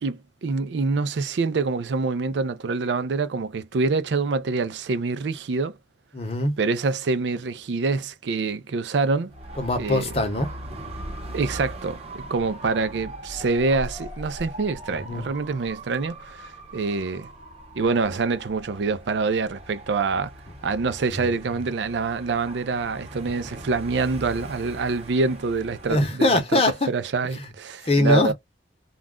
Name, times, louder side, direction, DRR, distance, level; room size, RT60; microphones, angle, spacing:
voice 1, 0.0-5.8 6.6-9.3 9.8-10.0 11.3-17.3 17.8-20.3 20.6-26.6 26.9-28.3, right 4 dB, 80° right, 0.4 m, -26 dB
voice 2, 6.1-6.5 9.6-10.5 15.1-15.3 25.9-26.9 27.9-28.3, left 1 dB, 35° left, 0.8 m, -22 dB
Dog / Motorcycle, 9.3-26.1, right 1 dB, 35° right, 0.9 m, -40 dB
2.4 x 2.2 x 3.5 m
head